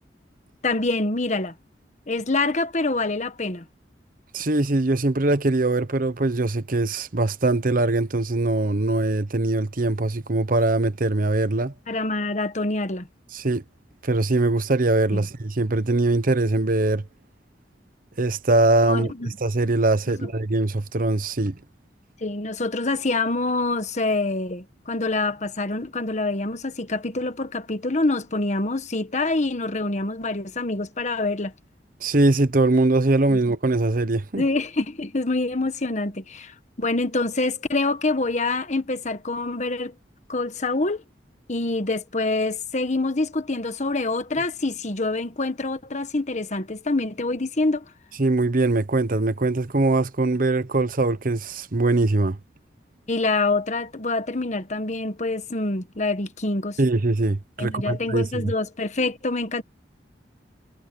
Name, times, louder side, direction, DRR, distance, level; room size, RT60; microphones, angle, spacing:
voice 1, 0.6-1.5 2.1-3.6 11.9-13.1 15.1-15.3 18.9-19.3 20.1-20.3 22.2-31.5 33.3-33.4 34.3-39.9 40.3-41.0 41.5-47.8 53.1-56.8 57.6-59.6, left 2 dB, 45° left, 1.4 m, -26 dB
voice 2, 4.3-11.7 13.3-13.6 14.0-17.0 18.2-21.5 32.0-34.4 48.2-52.4 56.8-58.5, right 2 dB, 50° right, 1.0 m, -22 dB
head